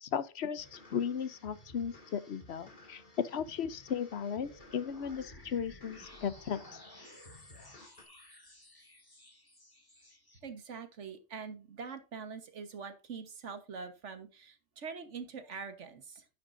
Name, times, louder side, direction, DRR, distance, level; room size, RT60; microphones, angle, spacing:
voice 1, 0.0-6.8, left 7 dB, 65° left, 1.0 m, -36 dB
sound 1, 0.6-8.0, left 2 dB, 45° left, 2.2 m, -56 dB
sound 2, 4.4-10.4, left 1 dB, 20° left, 1.8 m, -55 dB
voice 2, 10.4-16.2, right 5 dB, 85° right, 1.6 m, -44 dB
10.0 x 9.5 x 2.6 m
omnidirectional pair, 1.2 m